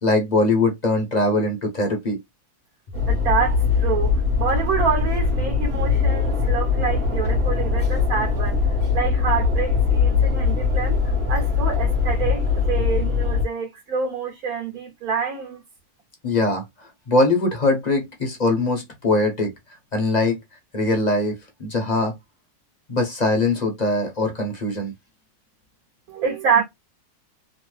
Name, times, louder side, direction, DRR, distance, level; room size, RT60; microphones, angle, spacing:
voice 1, 0.0-2.2 16.2-16.6 17.1-19.5 19.9-20.4 20.7-22.1 22.9-24.9, left 2 dB, 40° left, 0.7 m, -21 dB
sound 1, 2.9-13.4, left 5 dB, 40° right, 1.1 m, -21 dB
voice 2, 3.1-4.1 4.4-8.6 8.9-11.0 11.3-15.6 26.1-26.6, right 6 dB, 65° right, 1.2 m, -26 dB
3.1 x 2.0 x 3.1 m
omnidirectional pair, 1.7 m